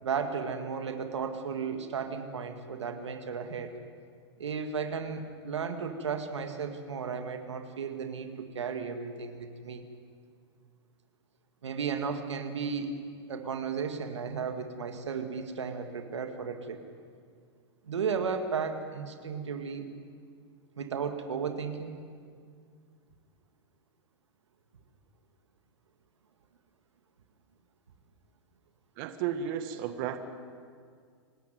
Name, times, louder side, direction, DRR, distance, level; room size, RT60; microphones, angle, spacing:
voice 1, 0.0-3.7 4.4-9.8 11.6-13.0 13.3-16.8 17.9-19.9 20.8-22.0, right 6 dB, 90° right, 7 dB, 2.0 m, -34 dB
voice 2, 29.0-30.2, right 9 dB, 50° right, 8 dB, 1.7 m, -33 dB
26.0 x 12.5 x 9.4 m, 2.1 s
hypercardioid pair, 115°, 14 cm